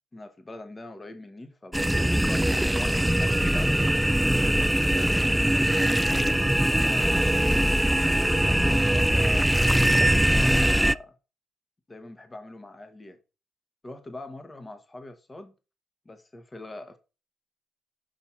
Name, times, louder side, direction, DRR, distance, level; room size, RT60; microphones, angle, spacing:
voice 1, 0.1-3.7 5.1-6.4 6.7-7.4 8.0-11.2 11.9-13.2 13.8-15.5 16.0-17.0, left 2 dB, 20° left, 1.4 m, -43 dB
sound 1, 1.7-10.9, right 1 dB, 5° right, 0.3 m, -22 dB
6.7 x 5.6 x 4.6 m
cardioid pair, 90°, 0 cm